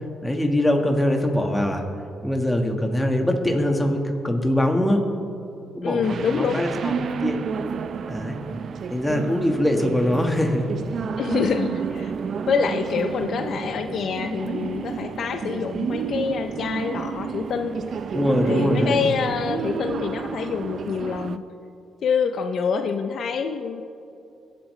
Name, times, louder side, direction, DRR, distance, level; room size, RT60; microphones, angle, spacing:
voice 1, 0.2-1.8 2.2-5.0 5.7-7.4 8.1-8.4 8.9-10.7 18.1-19.0, left 1 dB, 10° left, 3 dB, 1.5 m, -22 dB
voice 2, 5.8-6.7 11.2-12.1 12.5-17.8 18.4-21.4 22.0-23.8, left 6 dB, 60° left, 8 dB, 0.5 m, -26 dB
sound 1, 6.0-21.4, right 6 dB, 55° right, 0.4 m, -30 dB
22.5 x 8.3 x 3.2 m, 2.7 s
cardioid pair, 90°, 0 cm